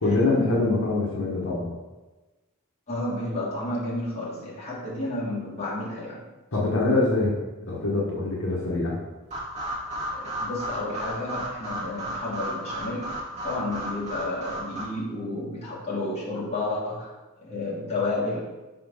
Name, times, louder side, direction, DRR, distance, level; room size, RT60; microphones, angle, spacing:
voice 1, 0.0-1.7 6.5-7.3 7.6-9.0, left 2 dB, 60° left, -4 dB, 1.1 m, -24 dB
voice 2, 2.9-6.2 10.1-17.1 17.4-18.5, left 2 dB, 30° left, -7 dB, 1.6 m, -31 dB
sound 1, 9.3-14.8, right 1 dB, 30° right, 1.6 m, -34 dB
4.4 x 4.3 x 5.4 m, 1.2 s
head